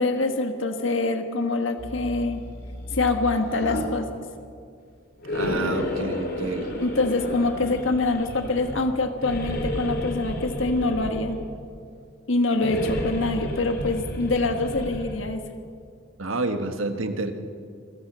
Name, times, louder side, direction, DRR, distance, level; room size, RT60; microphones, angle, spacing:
voice 1, 0.0-2.4 2.9-4.2 6.8-11.4 12.3-15.4, left 3 dB, 70° left, 6 dB, 1.6 m, -25 dB
sound 1, 1.8-3.9 5.2-8.8 9.2-11.6 12.5-15.3, left 1 dB, 50° left, 3.4 m, -31 dB
voice 2, 5.3-6.7 16.2-17.3, right 2 dB, 80° right, 7 dB, 1.6 m, -29 dB
26.0 x 15.5 x 6.3 m, 2.3 s
head